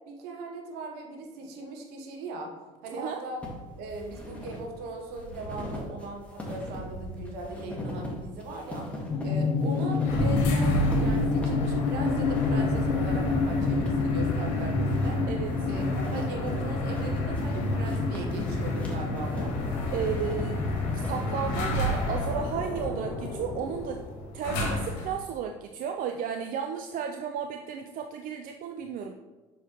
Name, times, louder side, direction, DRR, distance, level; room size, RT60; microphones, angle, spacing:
voice 1, 0.1-2.5 2.8-3.4 3.8-8.9 9.2-15.2 15.7-19.5, right 2 dB, 70° right, 2 dB, 1.2 m, -39 dB
sound 1, 3.4-22.2, equal, 5° left, 1.7 m, -40 dB
sound 2, 9.1-21.1, left 3 dB, 30° left, 1.6 m, -29 dB
sound 3, 10.0-25.2, left 1 dB, 75° left, 1.3 m, -30 dB
voice 2, 19.9-20.6 21.0-24.0 24.3-29.1, right 7 dB, 55° right, 4 dB, 0.5 m, -33 dB
6.2 x 5.0 x 3.0 m, 1.2 s
hypercardioid pair, 70°, 17 cm